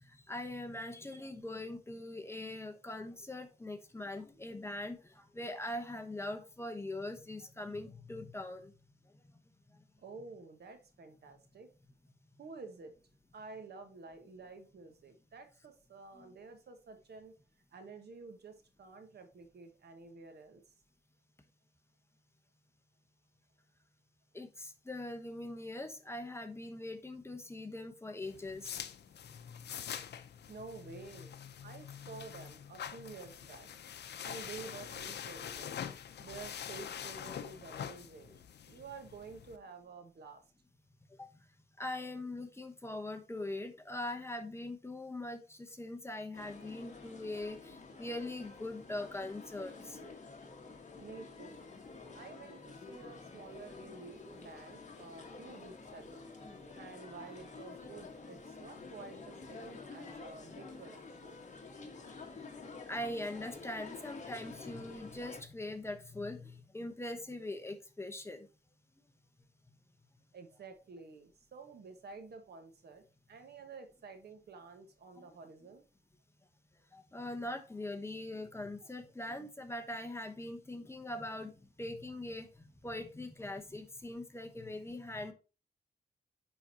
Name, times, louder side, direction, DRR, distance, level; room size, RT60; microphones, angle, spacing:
voice 1, 0.0-8.7 9.7-9.8 16.1-16.3 24.3-28.8 41.2-41.3 41.8-50.0 62.9-68.5 75.2-75.4 76.9-81.5 81.8-85.3, left 1 dB, 15° left, 7 dB, 0.9 m, -42 dB
voice 2, 10.0-11.7 12.4-12.9 13.3-17.3 17.7-20.7 30.5-31.3 31.6-33.7 34.2-35.8 36.2-38.4 38.7-40.4 51.0-51.7 52.1-56.3 56.7-61.4 70.3-75.8, right 4 dB, 75° right, 7 dB, 1.3 m, -51 dB
sound 1, 28.2-39.6, left 9 dB, 90° left, 0.6 m, -45 dB
sound 2, 46.3-65.4, left 4 dB, 45° left, 1.3 m, -49 dB
9.6 x 4.0 x 2.8 m, 0.33 s
wide cardioid pair, 125°, 17 cm